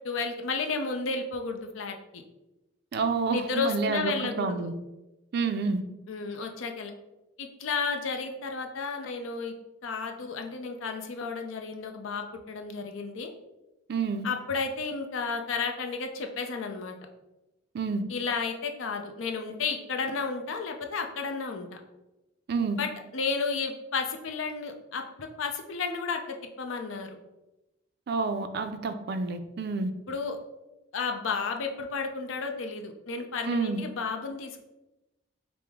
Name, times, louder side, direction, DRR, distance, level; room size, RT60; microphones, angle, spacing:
voice 1, 0.0-2.2 3.3-4.7 6.1-6.9 7.4-9.5 9.8-13.3 14.2-17.0 18.1-21.8 22.8-27.2 30.1-30.4 30.9-34.6, left 4 dB, 75° left, 4 dB, 0.5 m, -32 dB
voice 2, 2.9-4.7 5.3-5.8 13.9-14.2 17.7-18.0 22.5-22.8 28.1-29.9 33.4-33.8, right 4 dB, 55° right, 9 dB, 0.3 m, -29 dB
4.8 x 2.0 x 3.5 m, 0.98 s
head